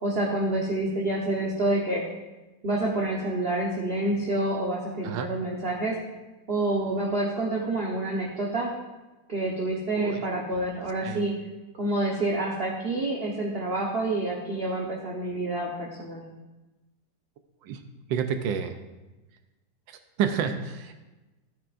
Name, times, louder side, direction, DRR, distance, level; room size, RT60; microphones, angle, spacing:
voice 1, 0.0-2.0 2.6-5.9 6.5-8.7 9.3-11.3 11.8-16.2, right 2 dB, 40° right, -2 dB, 1.1 m, -28 dB
voice 2, 10.0-10.3 11.0-11.2 17.6-17.8 18.1-18.8 19.9-20.9, right 7 dB, 85° right, 7 dB, 1.4 m, -29 dB
14.0 x 9.1 x 2.5 m, 1.1 s
omnidirectional pair, 2.0 m